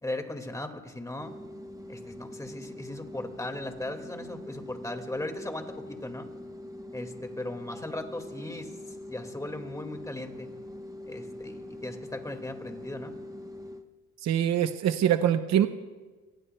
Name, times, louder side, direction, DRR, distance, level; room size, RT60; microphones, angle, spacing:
voice 1, 0.0-1.3 1.9-6.3 6.9-10.5 11.1-13.1, left 1 dB, 10° left, 5 dB, 1.9 m, -38 dB
sound 1, 1.2-13.8, left 1 dB, 10° right, 0.9 m, -43 dB
voice 2, 14.2-15.7, right 10 dB, 60° right, 9 dB, 0.7 m, -24 dB
27.5 x 19.5 x 2.2 m, 1.3 s
cardioid pair, 90°, 30 cm